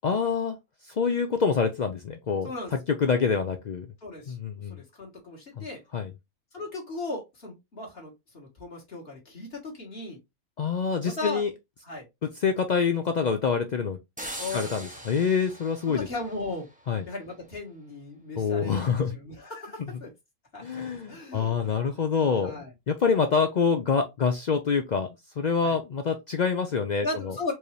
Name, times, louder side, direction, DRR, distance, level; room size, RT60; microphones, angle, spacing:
voice 1, 0.0-0.6 0.9-3.9 4.3-4.8 5.6-5.7 5.9-6.1 10.6-11.5 12.4-14.0 14.5-16.1 16.9-17.1 18.4-19.2 19.8-19.9 20.6-25.1 25.4-27.3, left 5 dB, 85° left, 0.3 m, -26 dB
voice 2, 4.0-4.4 4.7-5.8 6.5-10.2 11.0-11.4 11.8-12.1 14.4-14.8 15.9-16.7 17.1-20.1 20.5-20.8 21.1-22.7 25.6-25.8 27.0-27.5, left 2 dB, 45° left, 1.8 m, -37 dB
sound 1, 14.2-17.0, right 1 dB, 10° right, 0.6 m, -41 dB
4.6 x 2.7 x 3.1 m
omnidirectional pair, 1.4 m